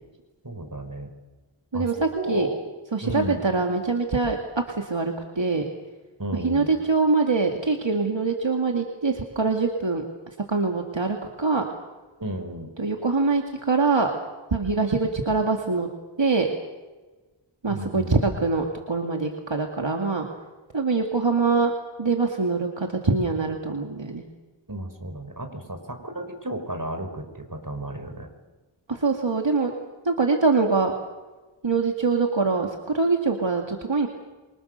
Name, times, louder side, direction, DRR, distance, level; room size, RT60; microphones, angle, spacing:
voice 1, 0.4-1.1 1.7-2.6 3.0-3.5 6.2-6.7 12.2-12.7 17.7-18.2 24.7-28.3, right 1 dB, 45° right, 6 dB, 4.8 m, -33 dB
voice 2, 1.7-2.5 2.9-5.6 6.3-10.0 10.5-11.6 12.8-14.1 14.5-15.9 16.2-16.5 17.6-20.3 20.7-21.7 22.0-24.2 28.9-29.7 30.0-30.9 31.6-34.1, right 4 dB, 65° right, 2 dB, 2.4 m, -24 dB
27.0 x 25.0 x 6.7 m, 1.2 s
wide cardioid pair, 45°, 47 cm